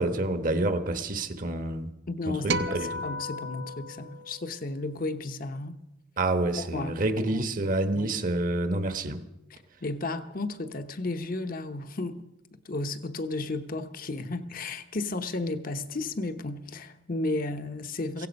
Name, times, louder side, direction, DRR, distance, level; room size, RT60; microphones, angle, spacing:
voice 1, 0.0-1.9 2.3-3.0 6.2-9.2, right 2 dB, 45° right, 1.1 m, -28 dB
voice 2, 2.1-5.8 6.7-7.0 7.3-7.4 7.9-8.1 9.5-12.3 12.6-18.3, left 2 dB, 45° left, 0.9 m, -33 dB
sound 1, 2.5-5.0, right 1 dB, 60° right, 0.7 m, -34 dB
16.5 x 16.5 x 5.3 m
head